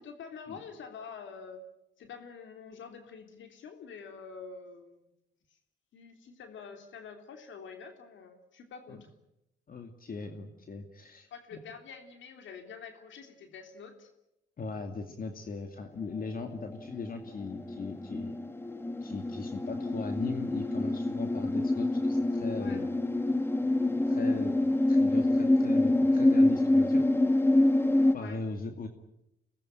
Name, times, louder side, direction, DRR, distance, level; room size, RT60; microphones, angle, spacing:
voice 1, 0.0-1.6 2.0-5.1 5.9-9.1 11.3-14.1 22.6-22.8 28.1-28.4, left 6 dB, 70° left, 6 dB, 3.3 m, -47 dB
voice 2, 9.7-11.3 14.6-18.3 19.0-22.9 24.1-24.5 24.9-27.0 28.1-28.9, left 4 dB, 45° left, 6 dB, 2.5 m, -38 dB
sound 1, 16.4-28.2, left 1 dB, 10° left, 1.2 m, -26 dB
25.0 x 19.5 x 9.2 m, 0.86 s
cardioid pair, 90°, 20 cm